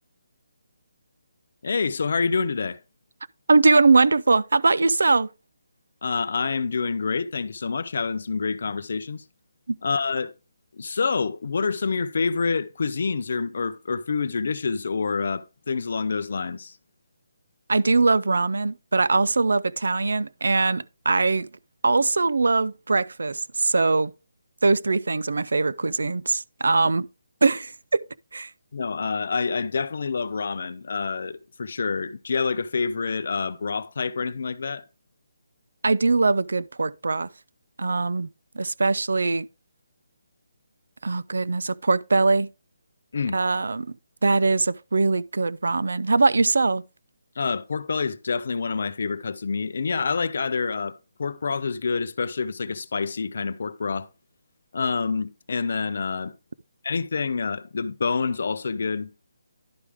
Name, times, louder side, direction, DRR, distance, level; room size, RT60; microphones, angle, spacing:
voice 1, 1.6-2.8 6.0-9.2 9.8-10.3 10.7-16.8 28.7-34.8 43.1-43.4 47.4-54.1 54.7-56.3 56.8-59.1, left 5 dB, 45° left, 0.5 m, -27 dB
voice 2, 3.5-5.3 9.7-9.8 17.7-21.5 21.8-24.1 24.6-27.1 27.4-28.0 28.3-28.5 35.8-37.3 37.8-38.3 38.6-39.5 41.0-42.5 43.3-44.0 44.2-46.8, right 3 dB, 80° right, 0.4 m, -21 dB
11.5 x 4.9 x 3.4 m
hypercardioid pair, 180°, 0 cm